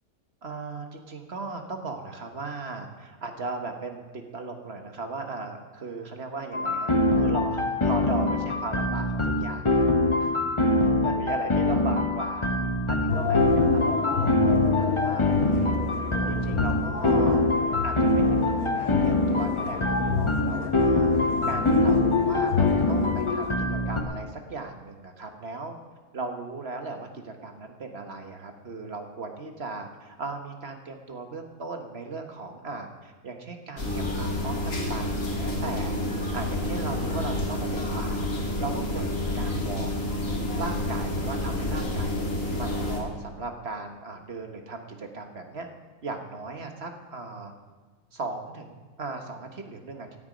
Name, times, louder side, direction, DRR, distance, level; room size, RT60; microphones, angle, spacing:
voice 1, 0.4-9.8 11.0-12.5 13.1-15.8 16.3-17.4 17.8-25.8 26.1-36.0 36.3-38.3 38.6-40.0 40.6-42.2 42.6-45.7 46.0-47.5 48.1-50.2, right 3 dB, 45° right, 5 dB, 1.6 m, -37 dB
sound 1, 6.5-24.0, left 2 dB, 20° left, 1.1 m, -24 dB
sound 2, 13.1-23.5, left 6 dB, 80° left, 1.5 m, -29 dB
sound 3, 33.8-43.0, left 1 dB, 60° left, 2.8 m, -29 dB
17.0 x 10.0 x 5.2 m, 1.5 s
omnidirectional pair, 1.5 m